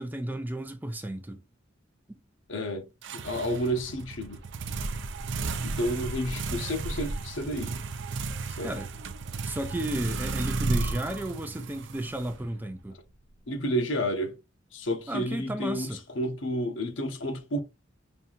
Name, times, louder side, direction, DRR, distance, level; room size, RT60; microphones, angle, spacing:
voice 1, 0.0-1.4 8.6-8.9 9.4-13.0 15.1-16.0, right 1 dB, 10° right, 0.4 m, -33 dB
voice 2, 2.5-2.9 3.1-4.4 5.6-7.8 8.5-8.7 13.5-14.4 14.7-17.6, equal, 70° left, 1.0 m, -31 dB
sound 1, 3.0-12.8, right 3 dB, 65° right, 0.5 m, -34 dB
5.6 x 2.8 x 2.4 m
head